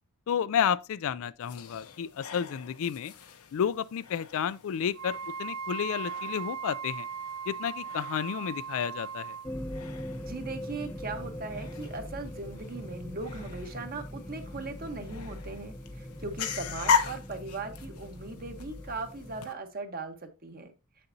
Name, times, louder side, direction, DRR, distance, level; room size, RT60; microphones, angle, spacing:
voice 1, 0.3-3.1 3.5-7.1 7.5-9.4, left 8 dB, 65° left, 0.3 m, -31 dB
sound 1, 1.4-19.5, left 6 dB, 80° left, 0.9 m, -38 dB
Wind instrument woodwind instrument, 4.9-9.5, right 6 dB, 60° right, 0.6 m, -38 dB
sound 2, 9.4-19.4, equal, 10° left, 0.6 m, -41 dB
voice 2, 10.2-20.7, right 3 dB, 40° right, 1.1 m, -39 dB
7.2 x 6.6 x 2.7 m
head